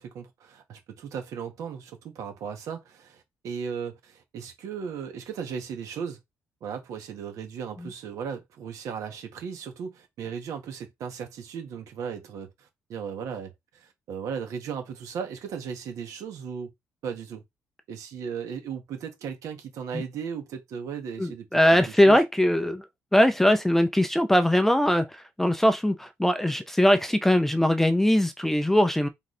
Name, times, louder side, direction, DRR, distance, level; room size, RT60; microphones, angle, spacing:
voice 1, 0.0-6.2 6.6-16.7 17.0-17.4 17.9-22.2, right 7 dB, 70° right, 1.5 m, -36 dB
voice 2, 21.2-22.8 23.1-29.1, left 1 dB, 5° left, 0.5 m, -21 dB
4.0 x 3.7 x 3.2 m
cardioid pair, 135°, 6 cm